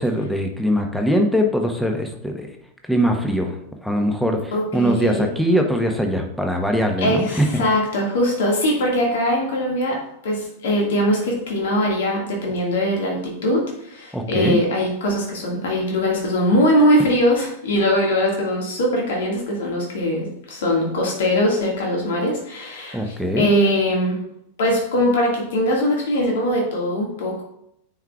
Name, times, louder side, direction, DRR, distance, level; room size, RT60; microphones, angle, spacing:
voice 1, 0.0-2.5 2.9-3.6 3.8-7.5 14.1-14.6 22.9-23.5, equal, ahead, 3 dB, 0.9 m, -21 dB
voice 2, 4.5-5.3 7.0-10.0 10.2-24.2 24.6-27.4, equal, 60° left, -1 dB, 1.8 m, -21 dB
9.1 x 4.7 x 2.3 m, 0.75 s
figure-of-eight pair, 90°, 0 cm